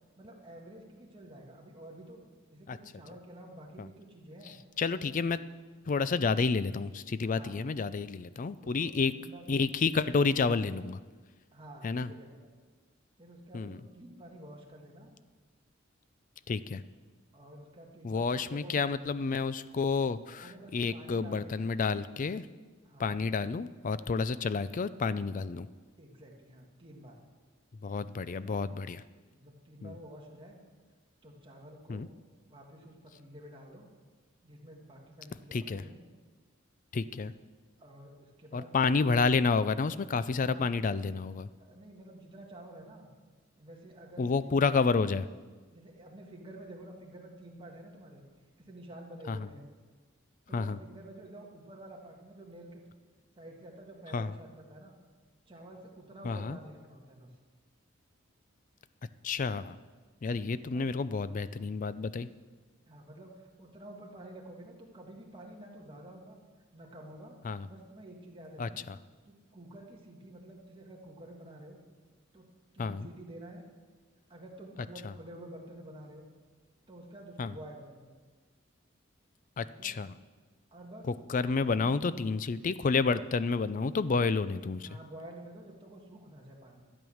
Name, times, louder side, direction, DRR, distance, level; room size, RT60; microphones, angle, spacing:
voice 1, 0.2-2.2 2.5-4.6 7.2-7.8 8.6-9.5 11.5-12.5 13.2-15.1 17.3-18.7 20.4-21.5 22.8-23.3 26.0-27.2 29.3-30.6 31.2-32.1 32.5-33.9 34.4-36.0 37.8-38.8 40.4-40.7 41.6-43.1 43.6-44.5 45.7-48.2 48.6-49.7 50.5-52.8 53.3-54.9 55.5-57.3 60.7-60.9 62.9-66.4 66.7-67.4 67.6-68.9 69.3-71.8 72.3-72.5 72.7-73.6 74.3-76.3 76.9-78.1 79.6-79.9 80.7-81.1 81.6-82.3 84.8-86.9, right 1 dB, 25° right, -1 dB, 1.8 m, -50 dB
voice 2, 4.8-5.4 5.9-9.1 9.5-11.0 11.8-12.1 13.5-13.8 16.5-16.8 18.0-22.5 23.0-25.7 27.8-29.0 29.8-29.9 31.9-32.1 35.5-35.8 36.9-37.3 38.5-41.5 44.2-45.3 49.3-49.5 50.5-50.8 54.1-54.3 56.2-56.6 59.2-59.8 60.2-62.3 67.4-67.7 68.6-69.0 72.8-73.1 75.0-75.1 77.4-77.5 79.6-80.1 81.3-84.9, left 4 dB, 40° left, 15 dB, 0.4 m, -30 dB
12.5 x 8.8 x 6.4 m, 1.4 s
head